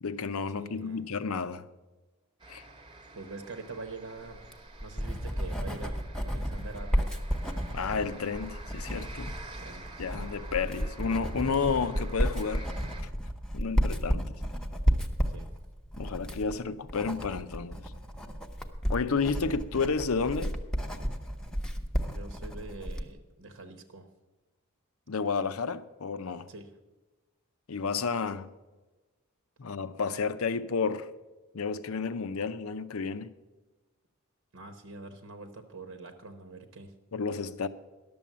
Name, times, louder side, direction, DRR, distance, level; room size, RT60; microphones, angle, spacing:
voice 1, 0.0-1.7 2.5-2.6 7.7-9.3 10.0-12.7 13.5-14.3 16.0-17.8 18.9-20.6 25.1-26.5 27.7-28.5 29.6-31.1 31.5-33.3 37.1-37.7, left 5 dB, 75° left, 0.6 m, -31 dB
voice 2, 0.6-1.0 3.1-4.4 4.8-7.1 9.6-9.8 15.3-15.5 22.0-24.1 26.5-26.7 34.5-36.9, right 3 dB, 65° right, 1.0 m, -44 dB
sound 1, 2.4-13.0, right 3 dB, 25° right, 1.0 m, -49 dB
Writing, 4.3-23.1, equal, 5° left, 0.8 m, -32 dB
11.5 x 7.0 x 7.4 m
head